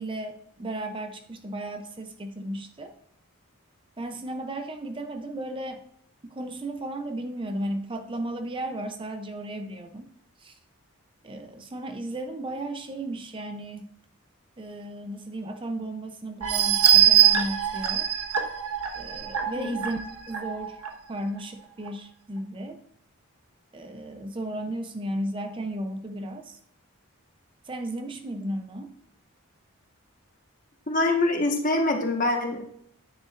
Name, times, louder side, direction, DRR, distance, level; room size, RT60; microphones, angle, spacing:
voice 1, 0.0-2.9 4.0-5.8 6.2-10.1 10.4-10.6 11.2-13.9 14.6-18.1 19.0-20.0 20.3-20.8 21.1-22.8 23.7-26.6 27.6-29.0, right 1 dB, 25° right, 7 dB, 0.5 m, -34 dB
sound 1, 16.4-20.9 21.4-21.5 21.9-22.0, right 10 dB, 85° right, 1.3 m, -22 dB
voice 2, 30.9-32.6, left 2 dB, 35° left, 3 dB, 1.2 m, -24 dB
9.6 x 9.6 x 2.4 m, 0.69 s
head